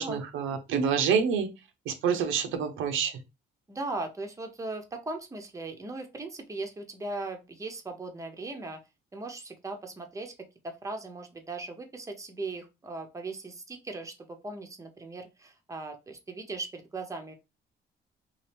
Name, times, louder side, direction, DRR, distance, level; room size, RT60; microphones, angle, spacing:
voice 1, 0.0-1.5 1.9-3.2, right 6 dB, 90° right, 7 dB, 0.6 m, -27 dB
voice 2, 3.7-8.8 9.1-10.3 10.6-17.4, right 3 dB, 15° right, 4 dB, 0.6 m, -38 dB
2.7 x 2.4 x 3.3 m, 0.26 s
cardioid pair, 90°, 20 cm